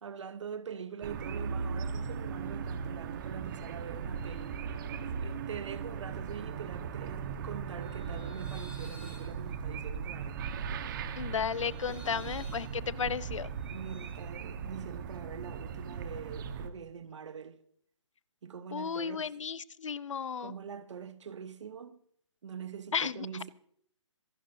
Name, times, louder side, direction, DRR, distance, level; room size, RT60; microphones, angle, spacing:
voice 1, 0.0-4.6 5.0-10.4 11.9-12.3 13.7-17.6 18.4-19.3 20.4-22.0 22.4-23.5, right 7 dB, 65° right, 1.0 m, -44 dB
sound 1, 1.0-16.7, right 6 dB, 40° right, 1.3 m, -38 dB
sound 2, 7.8-14.1, equal, 5° right, 5.4 m, -55 dB
voice 2, 11.2-13.5 18.7-20.5 22.9-23.3, left 6 dB, 70° left, 0.7 m, -34 dB
26.5 x 11.5 x 2.7 m
figure-of-eight pair, 140°, 17 cm